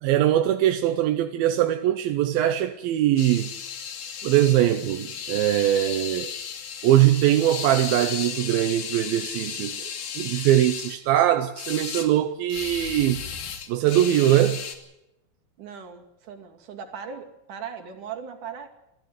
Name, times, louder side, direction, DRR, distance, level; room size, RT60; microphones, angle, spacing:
voice 1, 0.0-3.5 4.2-6.3 6.8-9.8 10.2-13.2 13.7-14.6, right 12 dB, 85° right, 2.7 m, -21 dB
sound 1, 3.2-11.0 11.6-12.1 12.5-14.8, left 7 dB, 85° left, 4.0 m, -34 dB
voice 2, 15.6-18.7, right 7 dB, 60° right, 3.8 m, -38 dB
25.0 x 15.0 x 7.9 m
omnidirectional pair, 4.2 m